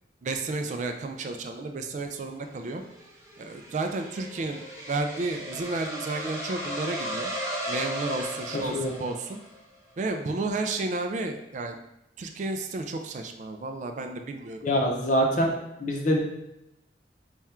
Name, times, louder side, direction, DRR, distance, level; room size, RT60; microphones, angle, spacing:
voice 1, 0.2-2.8 3.4-4.6 4.9-7.3 7.7-9.4 10.0-11.8 12.2-14.6, right 3 dB, 45° right, 5 dB, 0.3 m, -32 dB
sound 1, 2.5-9.6, equal, 15° right, 0.7 m, -36 dB
voice 2, 8.5-8.9 14.6-15.5 15.8-16.2, equal, 45° left, 0 dB, 0.7 m, -24 dB
3.4 x 2.3 x 4.3 m, 0.86 s
head